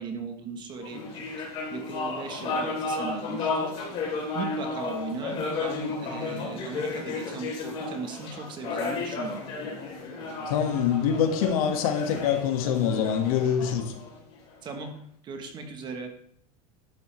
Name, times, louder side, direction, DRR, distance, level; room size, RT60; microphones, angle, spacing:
voice 1, 0.0-3.9 4.3-9.4 14.6-14.9 15.2-16.1, right 4 dB, 25° right, 5 dB, 1.3 m, -38 dB
sound 1, 0.8-14.5, left 3 dB, 30° left, 3.8 m, -33 dB
voice 2, 10.5-13.9, left 8 dB, 65° left, 5 dB, 1.9 m, -25 dB
11.5 x 11.0 x 3.4 m, 0.66 s
supercardioid pair, 170°, 20 cm